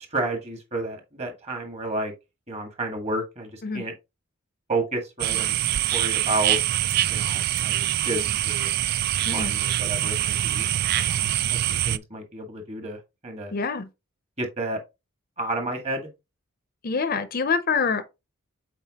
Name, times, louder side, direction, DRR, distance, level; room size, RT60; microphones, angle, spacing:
voice 1, 0.1-2.1 2.5-3.9 4.7-5.6 5.9-6.6 7.1-8.7 9.3-10.7 10.9-13.5 14.4-14.8 15.4-16.1, right 2 dB, 30° right, 1.8 m, -31 dB
sound 1, 5.2-12.0, right 12 dB, 50° right, 0.3 m, -24 dB
voice 2, 13.5-13.9 16.8-18.0, left 5 dB, 45° left, 0.6 m, -25 dB
7.3 x 4.4 x 2.9 m
head